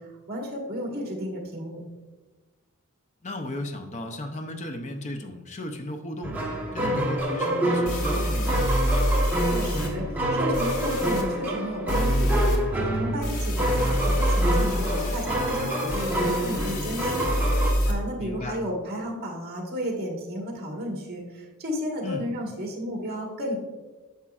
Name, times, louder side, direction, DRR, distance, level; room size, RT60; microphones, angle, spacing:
voice 1, 0.3-1.8 9.4-23.6, equal, 45° right, 0 dB, 1.6 m, -33 dB
voice 2, 3.2-6.4 6.7-8.6 18.2-18.6 22.0-22.3, left 1 dB, 35° left, 6 dB, 0.6 m, -35 dB
sound 1, 6.2-17.7, right 1 dB, 10° right, 1.1 m, -27 dB
sound 2, 7.2-7.3 7.8-9.9 10.5-11.2 11.9-12.6 13.2-17.9, equal, 85° left, 1.5 m, -26 dB
9.8 x 7.0 x 2.4 m, 1.2 s
head